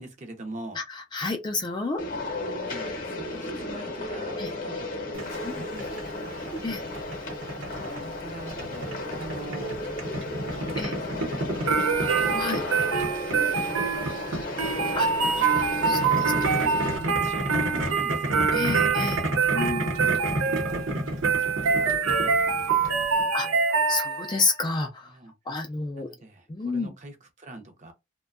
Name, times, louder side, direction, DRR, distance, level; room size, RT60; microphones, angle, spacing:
voice 1, 0.0-0.8 2.6-6.6 7.6-10.7 11.2-12.2 12.6-13.2 13.5-15.7 16.2-18.9 20.2-20.9 21.4-23.7 25.0-25.7 26.0-27.9, right 2 dB, 35° right, 0.6 m, -44 dB
voice 2, 0.8-2.0 4.4-4.5 5.4-5.6 6.6-6.8 10.8-10.9 12.3-12.6 14.9-15.1 15.9-16.3 18.5-20.1 23.3-23.5 23.9-25.1 25.5-26.1 26.5-26.9, left 4 dB, 20° left, 0.3 m, -30 dB
sound 1, 2.0-17.0, left 2 dB, 40° left, 0.7 m, -34 dB
Boiling, 5.1-23.2, right 1 dB, 70° right, 0.9 m, -33 dB
sound 2, 11.7-24.5, right 5 dB, 90° right, 0.5 m, -25 dB
2.6 x 2.1 x 2.4 m
head